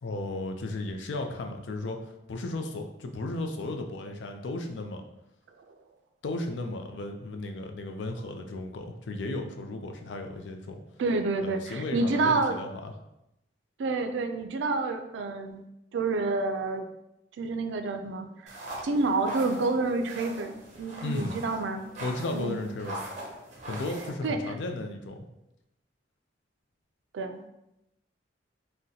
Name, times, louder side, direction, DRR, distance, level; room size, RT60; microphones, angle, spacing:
voice 1, 0.0-5.0 6.2-10.8 11.4-12.9 21.0-21.4 22.0-23.0 23.6-25.2, left 2 dB, 85° left, 4 dB, 0.4 m, -35 dB
voice 2, 11.0-12.6 13.8-15.6 15.9-16.9 17.4-18.6 18.8-21.8 22.3-22.6 24.2-24.5 27.1-27.4, right 3 dB, 90° right, 6 dB, 0.3 m, -28 dB
sound 1, 18.5-24.1, right 1 dB, 40° right, 0.6 m, -41 dB
3.8 x 2.1 x 2.7 m, 0.88 s
head